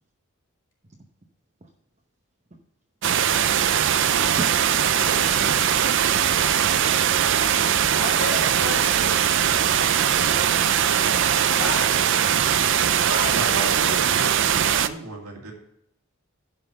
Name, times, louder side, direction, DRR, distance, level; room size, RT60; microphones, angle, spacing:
sound 1, 3.0-14.9, right 9 dB, 55° right, 0.5 m, -21 dB
voice 1, 4.0-6.4, right 1 dB, 30° right, 0 dB, 0.9 m, -38 dB
sound 2, 5.0-11.5, left 3 dB, 45° left, 2.6 m, -46 dB
voice 2, 8.0-9.0 11.6-11.9 13.0-13.8, left 3 dB, 80° left, 0 dB, 3.9 m, -31 dB
voice 3, 13.3-15.5, right 3 dB, 85° right, 0 dB, 2.5 m, -34 dB
11.5 x 5.6 x 6.3 m, 0.76 s
head